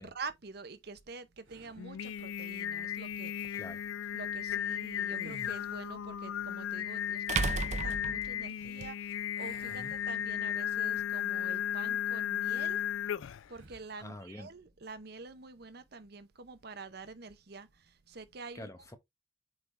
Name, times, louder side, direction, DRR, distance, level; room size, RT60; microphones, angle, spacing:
voice 1, 0.0-3.6 4.1-12.8 13.5-18.7, right 4 dB, 55° right, 0.8 m, -47 dB
sound 1, 1.4-2.1 5.0-6.1 9.4-10.8 11.3-11.5 13.5-14.0, right 2 dB, 75° right, 1.9 m, -54 dB
Singing, 1.8-13.5, left 10 dB, 80° left, 0.3 m, -35 dB
sound 2, 3.4-3.5 6.1-6.2 7.3-8.9, right 4 dB, 35° right, 0.4 m, -33 dB
voice 2, 14.0-14.5 18.5-18.9, left 1 dB, 15° left, 0.9 m, -46 dB
8.1 x 3.7 x 3.2 m
head